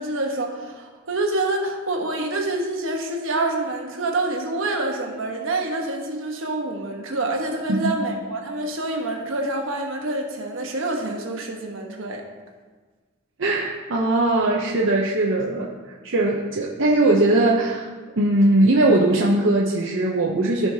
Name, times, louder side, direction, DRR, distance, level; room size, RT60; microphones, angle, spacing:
voice 1, 0.0-12.2, right 2 dB, 85° right, 2 dB, 1.2 m, -27 dB
voice 2, 13.4-15.7 16.0-17.9 18.2-20.7, right 2 dB, 70° right, -2 dB, 0.7 m, -20 dB
14.5 x 4.8 x 2.8 m, 1.4 s
head